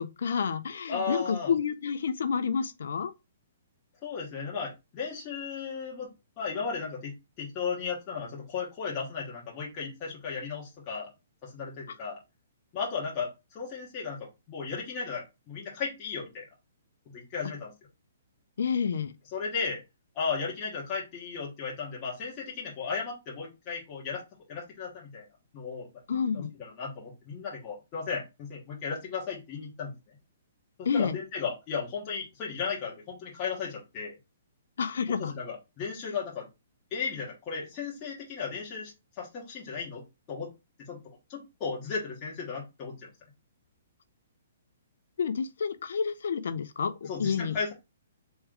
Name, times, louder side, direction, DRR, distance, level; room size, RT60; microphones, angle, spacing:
voice 1, 0.0-3.1 18.6-19.1 26.1-26.5 30.8-31.2 34.8-35.3 45.2-47.6, left 6 dB, 65° left, 0.5 m, -29 dB
voice 2, 0.9-1.5 4.0-11.1 11.4-12.2 12.7-16.4 17.1-17.7 19.3-19.8 20.1-24.2 24.5-25.3 25.5-30.2 30.8-34.1 35.1-36.5 36.9-40.0 40.3-40.5 40.8-43.1 47.0-47.7, left 5 dB, 20° left, 1.1 m, -35 dB
3.6 x 3.2 x 3.2 m
hypercardioid pair, 175°, 0 cm